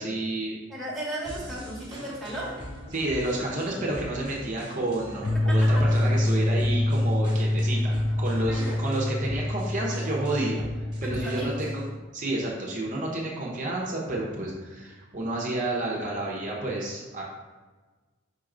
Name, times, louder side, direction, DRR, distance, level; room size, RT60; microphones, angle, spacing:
voice 1, 0.0-0.6 2.9-10.6 11.0-11.8 12.1-17.2, right 2 dB, 35° right, -3 dB, 0.9 m, -30 dB
voice 2, 0.7-2.6 5.3-5.9 8.5-8.8 11.0-11.8, right 1 dB, ahead, -5 dB, 1.3 m, -35 dB
sound 1, 1.2-11.9, equal, 20° right, 1.3 m, -42 dB
sound 2, 5.2-11.9, left 1 dB, 50° left, 0.5 m, -26 dB
5.6 x 4.6 x 3.8 m, 1.3 s
head